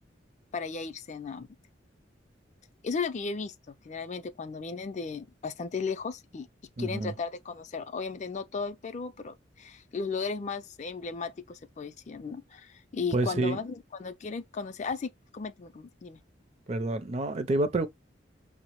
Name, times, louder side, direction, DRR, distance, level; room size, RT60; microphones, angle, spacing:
voice 1, 0.5-1.5 2.8-6.5 6.8-16.2, left 5 dB, 40° left, 0.4 m, -35 dB
voice 2, 6.8-7.1 13.1-13.6 16.7-17.9, right 2 dB, 35° right, 0.4 m, -28 dB
5.4 x 2.0 x 2.9 m
head